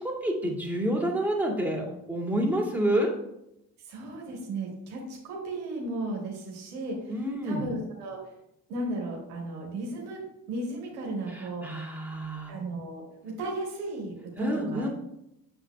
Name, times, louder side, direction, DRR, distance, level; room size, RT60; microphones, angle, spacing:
voice 1, 0.0-3.1 7.1-7.6 11.3-12.5 14.4-14.9, right 1 dB, 5° right, -3 dB, 2.3 m, -28 dB
voice 2, 3.9-8.2 8.7-10.2 10.5-11.6 12.5-14.9, right 2 dB, 80° right, -1 dB, 1.7 m, -35 dB
7.9 x 6.9 x 2.3 m, 0.81 s
hypercardioid pair, 50°, 44 cm